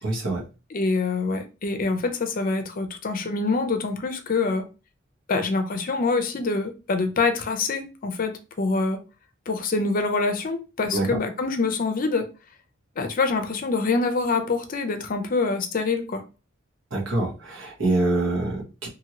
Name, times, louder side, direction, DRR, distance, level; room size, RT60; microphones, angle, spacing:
voice 1, 0.0-0.4 10.9-11.2 16.9-18.9, right 2 dB, 75° right, 1.1 m, -25 dB
voice 2, 0.7-4.7 5.3-9.0 9.5-12.3 13.0-16.2, left 3 dB, 45° left, 0.5 m, -25 dB
2.7 x 2.7 x 2.8 m
head